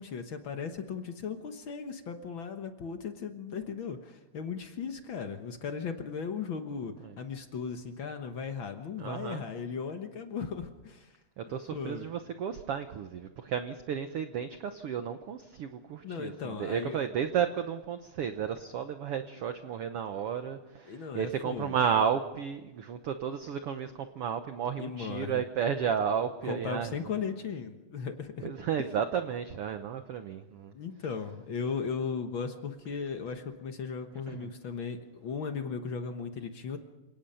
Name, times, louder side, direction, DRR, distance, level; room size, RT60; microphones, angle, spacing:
voice 1, 0.0-11.1 11.5-12.1 16.0-17.0 20.9-21.8 24.8-25.4 26.5-28.5 28.8-28.9 30.7-36.8, left 6 dB, 60° left, 6 dB, 1.3 m, -37 dB
voice 2, 9.0-9.4 11.4-27.2 28.4-30.7 34.3-34.5, right 8 dB, 90° right, 8 dB, 1.3 m, -33 dB
28.0 x 18.0 x 5.6 m, 1.0 s
omnidirectional pair, 3.9 m